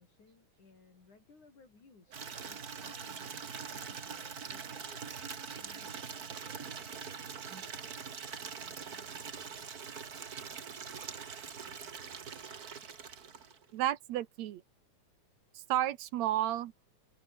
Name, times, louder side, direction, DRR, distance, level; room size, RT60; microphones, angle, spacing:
voice 1, 0.0-7.2, left 4 dB, 85° left, 7.8 m, -61 dB
Water tap faucet / Liquid, 2.1-13.7, right 6 dB, 35° right, 1.8 m, -43 dB
voice 2, 13.7-14.6 15.5-16.9, right 13 dB, 70° right, 2.1 m, -32 dB
omnidirectional pair, 3.4 m